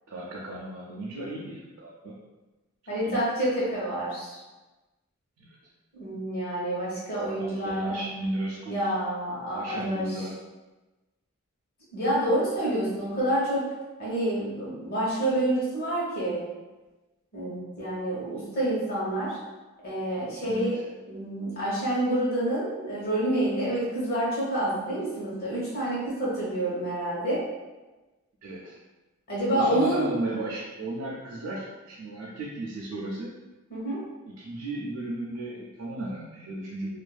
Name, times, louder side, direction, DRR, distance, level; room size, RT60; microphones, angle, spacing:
voice 1, 0.1-2.2 3.0-3.2 5.4-5.6 7.4-8.9 9.5-10.3 20.4-20.8 28.4-28.8 29.5-33.3 34.2-37.0, right 2 dB, 65° right, -5 dB, 0.4 m, -34 dB
voice 2, 2.9-4.4 5.9-8.0 8.7-10.2 11.9-13.7 14.0-16.4 17.3-19.4 19.8-20.8 21.1-27.4 29.3-30.1 33.7-34.1, right 1 dB, 45° left, -7 dB, 0.9 m, -28 dB
2.4 x 2.2 x 2.4 m, 1.1 s
head